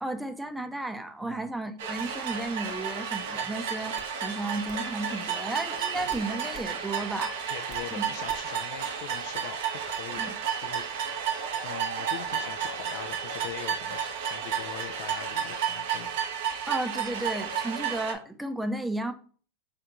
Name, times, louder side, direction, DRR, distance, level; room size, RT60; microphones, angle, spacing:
voice 1, 0.0-7.4 8.0-8.1 10.2-10.3 16.7-19.1, right 2 dB, 5° right, 0.6 m, -33 dB
voice 2, 1.2-1.5 7.5-10.3 10.6-10.8 11.6-16.2, left 10 dB, 70° left, 0.4 m, -42 dB
sound 1, 1.8-18.1, right 7 dB, 70° right, 0.7 m, -32 dB
sound 2, 4.0-4.1 4.7-4.8 6.1-6.7 7.1-7.9 8.3-8.6, left 3 dB, 15° left, 0.9 m, -48 dB
3.7 x 3.4 x 2.9 m
hypercardioid pair, 105°, 0 cm